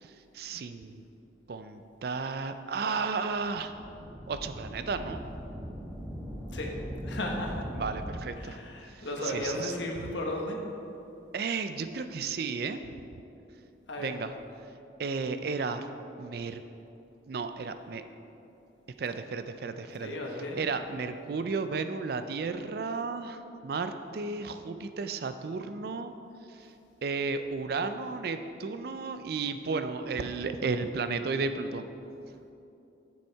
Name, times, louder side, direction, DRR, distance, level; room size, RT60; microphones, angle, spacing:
voice 1, 0.0-1.0 1.5-3.7 4.3-5.2 7.7-8.6 9.0-9.7 11.3-12.8 14.0-14.3 15.0-15.9 16.2-16.6 17.3-18.0 19.0-20.2 20.5-26.1 26.6-26.7 27.0-31.9, right 4 dB, 55° right, 9 dB, 0.4 m, -33 dB
sound 1, 3.4-8.1, equal, 5° right, 1.1 m, -40 dB
voice 2, 7.0-7.7 8.4-10.6 13.9-14.1 19.9-20.6, left 1 dB, 75° left, 0 dB, 1.1 m, -35 dB
7.1 x 6.3 x 4.5 m, 2.8 s
head